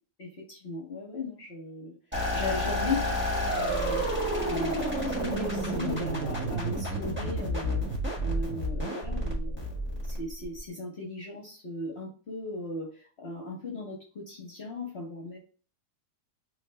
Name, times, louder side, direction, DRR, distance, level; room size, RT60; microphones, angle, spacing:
voice 1, 0.2-1.9 2.3-4.1 4.4-7.8 8.2-15.4, left 3 dB, 45° left, -1 dB, 1.0 m, -37 dB
sound 1, 2.1-10.6, equal, 10° right, 1.1 m, -30 dB
3.3 x 3.2 x 3.2 m, 0.40 s
omnidirectional pair, 1.8 m